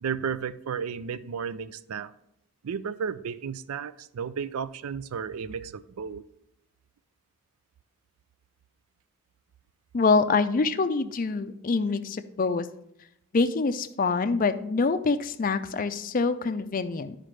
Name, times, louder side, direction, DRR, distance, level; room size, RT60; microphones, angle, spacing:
voice 1, 0.0-2.1 2.6-6.2, right 6 dB, 85° right, 14 dB, 0.4 m, -33 dB
voice 2, 9.9-12.7 13.3-17.2, left 4 dB, 40° left, 11 dB, 0.4 m, -25 dB
11.5 x 5.0 x 3.2 m, 0.79 s
head